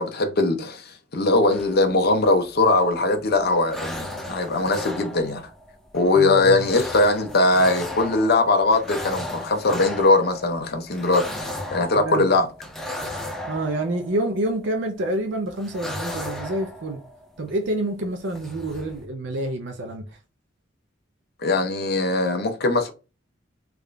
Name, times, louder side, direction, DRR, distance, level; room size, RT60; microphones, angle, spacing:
voice 1, 0.0-5.4 5.9-11.3 11.7-12.5 21.4-22.9, left 2 dB, 55° left, 0.8 m, -20 dB
sound 1, 1.5-2.9 3.3-15.0 15.5-17.6 18.0-18.1 18.3-19.0, left 1 dB, ahead, 0.6 m, -36 dB
voice 2, 6.2-6.6 11.9-12.3 13.5-17.0 17.4-20.2, right 1 dB, 65° right, 0.6 m, -27 dB
3.6 x 2.5 x 3.3 m
head